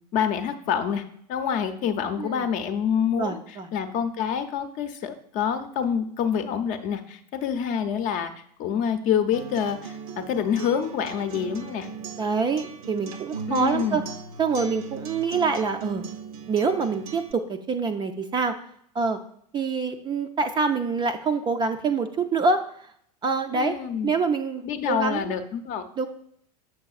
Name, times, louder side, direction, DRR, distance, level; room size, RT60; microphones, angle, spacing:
voice 1, 0.1-1.0 1.3-3.4 3.7-11.9 13.5-14.0 23.5-24.1 24.6-25.9, left 8 dB, 40° left, 8 dB, 0.7 m, -27 dB
voice 2, 3.2-3.7 12.2-14.0 14.4-16.1 16.5-18.6 18.9-19.2 19.5-22.9 23.2-23.8 24.0-25.4 26.0-26.1, right 4 dB, 20° right, 6 dB, 0.4 m, -26 dB
Acoustic guitar, 9.3-17.3, right 5 dB, 60° right, 0.7 m, -38 dB
7.4 x 6.0 x 2.4 m, 0.67 s
figure-of-eight pair, 90°, 20 cm